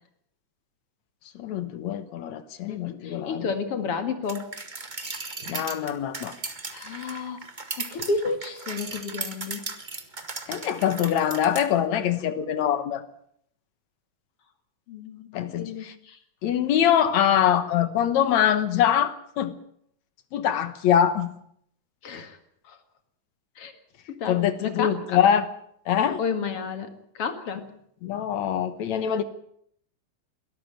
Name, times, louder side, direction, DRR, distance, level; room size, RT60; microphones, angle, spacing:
voice 1, 1.4-3.5 5.5-6.3 10.5-13.0 15.3-15.9 16.4-19.6 20.3-21.3 24.3-25.5 25.9-26.2 28.0-29.2, left 9 dB, 70° left, 12 dB, 2.4 m, -24 dB
voice 2, 2.7-4.5 6.7-7.4 7.8-9.6 14.9-15.3 15.6-16.2 22.0-22.4 22.7-22.8 23.6-23.7 24.1-25.2 26.2-27.6, left 5 dB, 50° left, 8 dB, 2.7 m, -31 dB
sound 1, 4.3-11.7, right 3 dB, 25° right, 1.1 m, -37 dB
22.0 x 13.5 x 9.0 m, 0.69 s
omnidirectional pair, 3.5 m